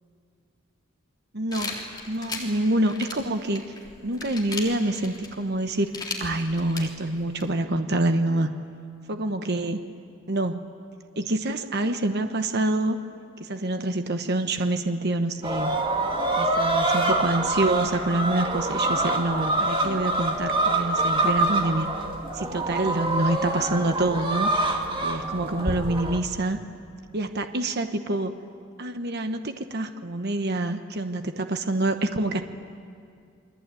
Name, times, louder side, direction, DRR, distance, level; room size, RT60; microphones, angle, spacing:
voice 1, 1.3-3.6 4.0-5.9 6.2-8.5 9.1-9.8 10.3-10.6 11.2-13.0 13.4-15.8 16.3-21.9 22.3-24.5 25.0-26.6 27.1-28.3 28.8-32.4, right 2 dB, 50° right, 7 dB, 1.1 m, -26 dB
sound 1, 1.5-7.5, left 3 dB, 20° left, 3.5 m, -37 dB
sound 2, 15.4-26.2, right 2 dB, 25° right, 2.2 m, -25 dB
28.5 x 22.0 x 9.1 m, 2.3 s
head